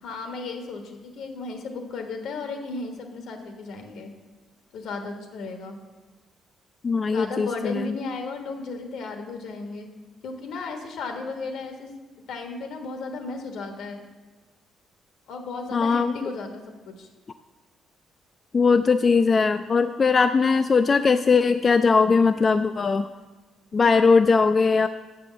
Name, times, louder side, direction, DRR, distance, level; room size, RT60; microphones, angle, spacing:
voice 1, 0.0-4.1 4.7-5.8 7.1-9.9 10.2-11.9 12.3-14.0 15.3-16.5 16.9-17.1, left 3 dB, 80° left, 5 dB, 1.2 m, -34 dB
voice 2, 6.8-8.0 15.7-16.3 18.5-23.1 23.7-24.9, left 4 dB, 40° left, 9 dB, 0.3 m, -20 dB
6.6 x 6.2 x 7.1 m, 1.2 s
cardioid pair, 90°, 0 cm